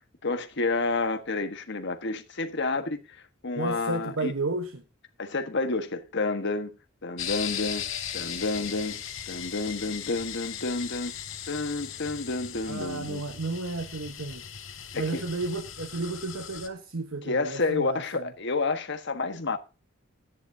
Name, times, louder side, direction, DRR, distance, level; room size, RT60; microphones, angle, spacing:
voice 1, 0.2-3.2 3.4-4.3 5.2-6.7 7.0-7.9 8.1-11.1 11.5-13.2 14.9-15.2 17.2-19.6, left 3 dB, 60° left, 1.4 m, -30 dB
voice 2, 3.6-4.8 12.7-14.4 14.9-18.3, right 3 dB, 80° right, 1.2 m, -32 dB
sound 1, 7.2-16.7, left 9 dB, 90° left, 3.6 m, -38 dB
13.5 x 10.0 x 2.8 m
head